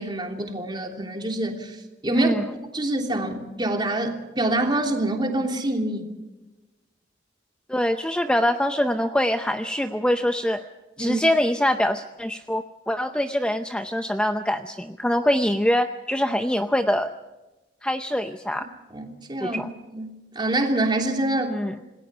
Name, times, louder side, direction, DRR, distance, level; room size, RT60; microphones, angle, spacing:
voice 1, 0.0-2.3 2.7-6.1 11.0-11.2 18.9-19.6 19.9-20.1 20.3-21.6, right 1 dB, 25° right, 2 dB, 3.1 m, -26 dB
voice 2, 7.7-10.6 11.0-17.1 17.8-18.7 19.4-19.7 21.5-21.8, left 1 dB, 5° left, 7 dB, 0.6 m, -24 dB
27.5 x 19.0 x 5.6 m, 1.1 s
head